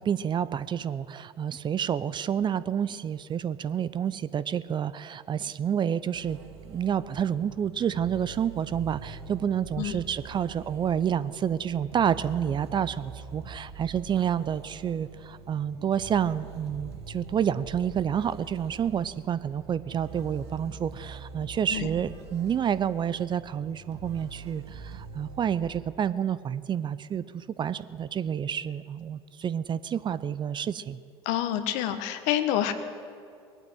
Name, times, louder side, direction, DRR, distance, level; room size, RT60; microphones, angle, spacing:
voice 1, 0.0-6.4 6.7-31.0, right 8 dB, 35° right, 16 dB, 0.6 m, -29 dB
sound 1, 6.1-25.7, right 4 dB, 80° right, 1.6 m, -45 dB
voice 2, 31.2-32.7, left 11 dB, 65° left, 10 dB, 1.3 m, -27 dB
20.5 x 9.0 x 7.8 m, 2.3 s
hypercardioid pair, 70°, 14 cm